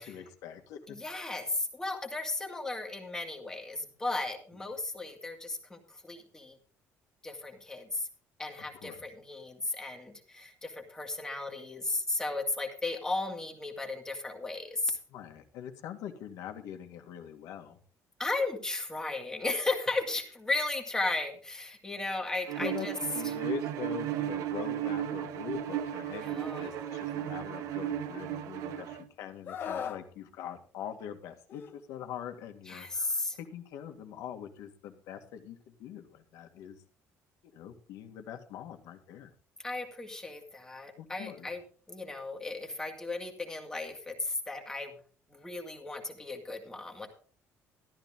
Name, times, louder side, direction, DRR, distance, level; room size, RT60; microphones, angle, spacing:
voice 1, 0.0-1.3 8.6-9.1 15.1-17.8 22.6-22.9 23.1-36.8 37.5-39.3 41.0-41.5, left 9 dB, 80° left, 6 dB, 2.1 m, -43 dB
voice 2, 0.9-6.6 7.2-8.1 8.4-15.0 18.2-23.0 26.0-27.0 32.7-33.4 39.6-41.6 41.9-44.9 45.3-47.1, left 2 dB, 10° left, 3 dB, 2.1 m, -35 dB
Bowed string instrument, 22.5-29.0, right 11 dB, 80° right, 1.2 m, -35 dB
Screaming, 29.5-30.0 31.5-31.7, left 8 dB, 40° left, 1.3 m, -37 dB
14.0 x 12.5 x 3.8 m, 0.41 s
cardioid pair, 175°, 6 cm